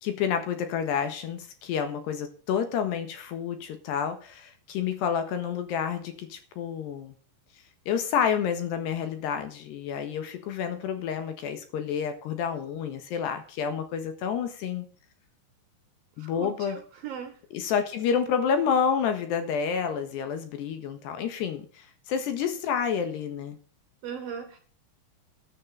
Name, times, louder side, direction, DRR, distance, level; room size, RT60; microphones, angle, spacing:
voice 1, 0.0-7.1 7.9-14.9 16.2-16.8 17.5-23.6, left 7 dB, 70° left, 3.3 m, -29 dB
voice 2, 16.2-17.4 24.0-24.6, right 7 dB, 65° right, 2.6 m, -38 dB
16.0 x 10.5 x 4.0 m
omnidirectional pair, 5.7 m